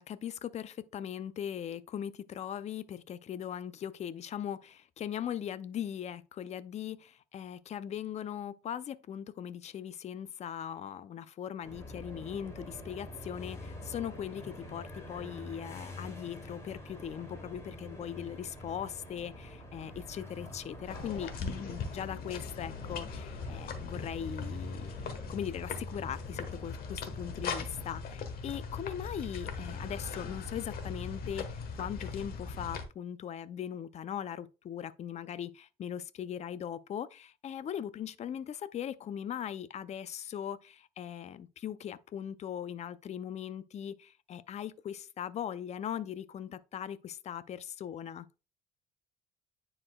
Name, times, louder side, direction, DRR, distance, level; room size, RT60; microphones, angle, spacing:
voice 1, 0.0-24.9 25.3-48.3, left 9 dB, 40° left, 0.5 m, -40 dB
sound 1, 11.6-27.8, left 1 dB, 15° left, 2.7 m, -47 dB
sound 2, 20.9-32.8, left 4 dB, 60° left, 1.3 m, -39 dB
9.7 x 4.3 x 2.3 m
cardioid pair, 110°, 17 cm